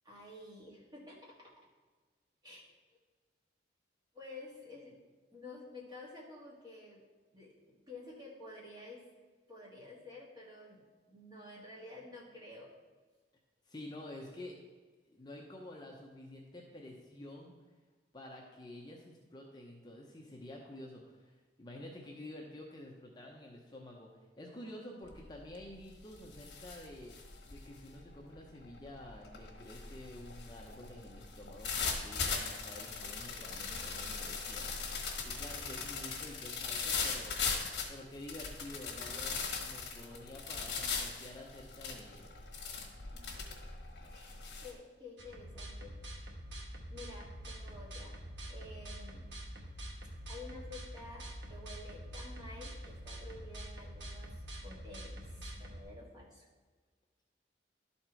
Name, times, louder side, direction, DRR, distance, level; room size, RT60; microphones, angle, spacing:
voice 1, 0.0-1.7 2.4-2.7 4.1-5.0 5.3-7.0 7.3-9.1 9.5-10.8 11.1-12.7 43.1-43.6 44.1-46.3 46.9-48.2 48.5-49.3 50.3-56.5, left 2 dB, 20° right, -4 dB, 1.8 m, -51 dB
voice 2, 13.6-14.6 15.0-17.6 18.1-37.4 37.9-42.3, left 1 dB, 25° left, -1 dB, 0.7 m, -50 dB
sound 1, 25.1-25.4 25.8-44.7, left 5 dB, 65° left, 1.4 m, -39 dB
sound 2, 45.2-55.8, equal, 80° right, 1.1 m, -46 dB
11.5 x 4.3 x 4.4 m, 1.4 s
head